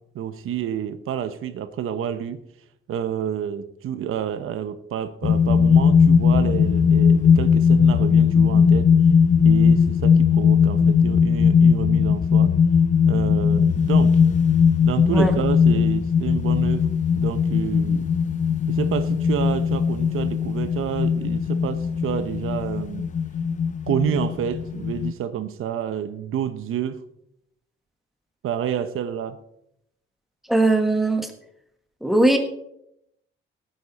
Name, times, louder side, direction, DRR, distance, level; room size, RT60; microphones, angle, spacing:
voice 1, 0.1-2.4 2.9-8.9 9.4-12.5 13.0-14.2 14.8-16.9 17.1-18.1 18.7-23.1 23.9-27.0 28.4-29.4, right 9 dB, 80° right, 1.0 m, -29 dB
sound 1, 5.2-25.1, left 6 dB, 35° left, 0.5 m, -19 dB
voice 2, 15.1-15.4 30.5-31.3 32.0-32.4, right 2 dB, ahead, 1.5 m, -19 dB
18.0 x 9.5 x 4.2 m
wide cardioid pair, 175°, 21 cm